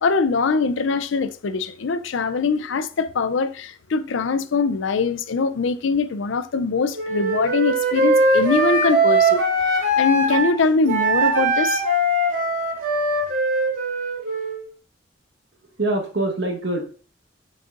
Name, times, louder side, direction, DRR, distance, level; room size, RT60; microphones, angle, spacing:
voice 1, 0.0-9.4 10.0-11.8, left 4 dB, 70° left, 0.4 m, -22 dB
Wind instrument woodwind instrument, 7.0-10.5 10.9-14.6, right 2 dB, 90° right, 2.6 m, -20 dB
voice 2, 15.7-16.8, right 2 dB, 60° right, 1.3 m, -24 dB
7.3 x 5.4 x 2.5 m
head